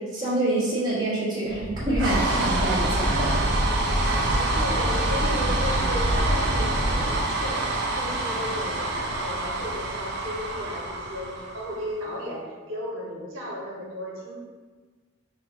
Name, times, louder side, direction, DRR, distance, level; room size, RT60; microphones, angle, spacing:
voice 1, 0.0-3.3, right 1 dB, 20° right, -10 dB, 1.3 m, -26 dB
sound 1, 1.5-12.0, right 1 dB, 50° right, 0.5 m, -25 dB
voice 2, 4.3-14.4, equal, 75° right, -5 dB, 0.9 m, -34 dB
5.5 x 2.5 x 2.8 m, 1.4 s
head